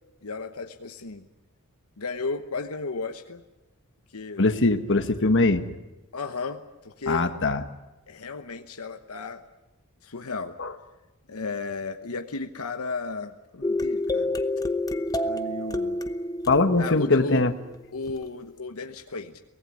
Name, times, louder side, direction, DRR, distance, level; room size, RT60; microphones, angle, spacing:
voice 1, 0.2-1.3 2.0-3.4 4.1-4.4 6.1-7.3 8.1-9.4 10.0-10.6 11.3-14.4 15.2-16.0 16.8-17.5 17.9-19.4, left 3 dB, 80° left, 7 dB, 1.1 m, -34 dB
voice 2, 4.4-5.6 7.1-7.6 10.6-10.7 16.5-17.5, left 3 dB, 60° left, 9 dB, 1.5 m, -21 dB
sound 1, 13.6-18.1, left 1 dB, 15° left, 1.0 m, -29 dB
24.0 x 18.0 x 9.7 m, 1.1 s
head